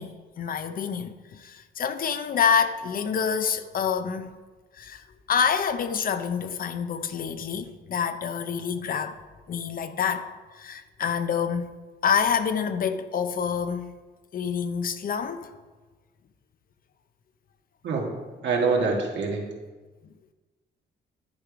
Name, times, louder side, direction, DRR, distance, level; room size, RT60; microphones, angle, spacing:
voice 1, 0.0-4.4 4.7-9.2 9.5-10.3 10.5-11.7 12.0-13.9 14.3-15.5, left 7 dB, 50° left, 0.6 m, -27 dB
voice 2, 18.4-19.5, right 4 dB, 80° right, 1.7 m, -25 dB
10.5 x 5.1 x 5.0 m
wide cardioid pair, 145°, 19 cm